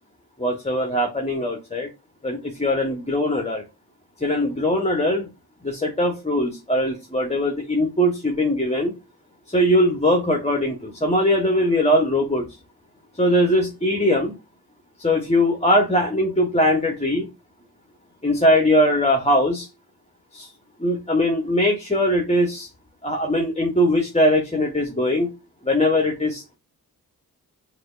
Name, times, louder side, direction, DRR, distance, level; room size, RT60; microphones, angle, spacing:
voice 1, 0.4-1.9 2.2-3.6 4.2-5.3 5.6-8.9 9.5-12.5 13.1-14.3 15.0-17.3 18.2-19.7 20.3-20.5 20.8-22.7 23.0-25.3 25.6-26.4, left 1 dB, 15° left, 2 dB, 1.3 m, -21 dB
6.0 x 2.9 x 2.5 m, 0.27 s
cardioid pair, 40°, 38 cm